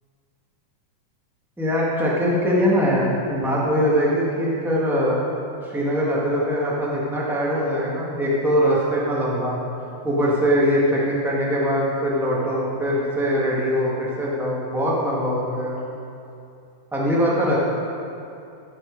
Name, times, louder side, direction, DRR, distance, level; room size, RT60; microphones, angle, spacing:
voice 1, 1.6-5.2 5.6-9.6 10.0-15.8 16.9-17.6, equal, ahead, -6 dB, 0.6 m, -22 dB
14.0 x 6.5 x 5.2 m, 2.6 s
omnidirectional pair, 3.6 m